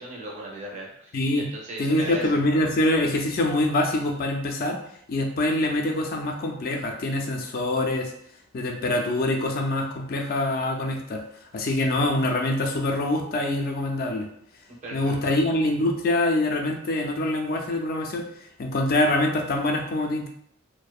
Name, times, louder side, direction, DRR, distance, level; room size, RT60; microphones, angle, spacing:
voice 1, 0.0-2.3 14.8-15.4, right 1 dB, 35° right, -3 dB, 0.6 m, -38 dB
voice 2, 1.1-1.5 1.8-4.8 5.1-8.1 8.5-11.2 11.5-14.3 14.9-18.3 18.6-20.3, left 1 dB, 45° left, 3 dB, 0.4 m, -24 dB
2.6 x 2.0 x 2.3 m, 0.68 s
head